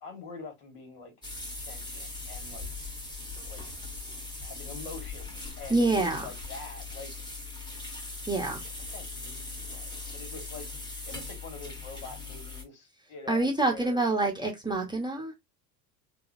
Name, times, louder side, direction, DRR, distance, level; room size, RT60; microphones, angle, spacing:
voice 1, 0.0-1.1 1.5-2.7 3.2-3.6 4.4-7.1 8.9-10.7 11.1-14.0, left 4 dB, 60° left, 1.6 m, -45 dB
sound 1, 1.2-12.6, left 3 dB, 10° left, 1.2 m, -40 dB
voice 2, 5.7-6.2 8.3-8.6 13.3-15.3, right 2 dB, 10° right, 0.9 m, -26 dB
3.7 x 2.3 x 2.6 m
hypercardioid pair, 80°, 49 cm